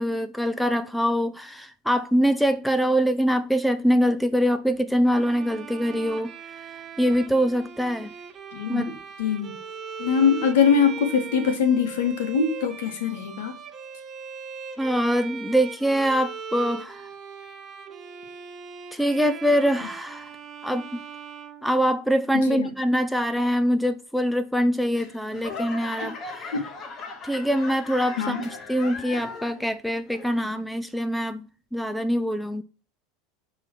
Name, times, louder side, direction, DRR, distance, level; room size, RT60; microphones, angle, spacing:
voice 1, 0.0-6.3 7.0-8.1 8.7-9.0 14.8-17.1 18.9-20.3 20.6-21.0 21.6-26.6 27.2-31.5 31.7-32.6, equal, ahead, 0.4 m, -24 dB
Bowed string instrument, 5.1-22.3, right 6 dB, 30° right, 0.9 m, -40 dB
voice 2, 8.5-9.5 10.0-13.6 22.5-22.7 26.0-26.1 26.5-26.6 28.2-28.4, left 6 dB, 85° left, 1.6 m, -23 dB
Laughter / Clapping / Crowd, 24.9-29.7 30.1-30.6 31.2-31.3, left 3 dB, 35° left, 1.4 m, -38 dB
6.0 x 3.7 x 4.5 m
supercardioid pair, 130°, 0 cm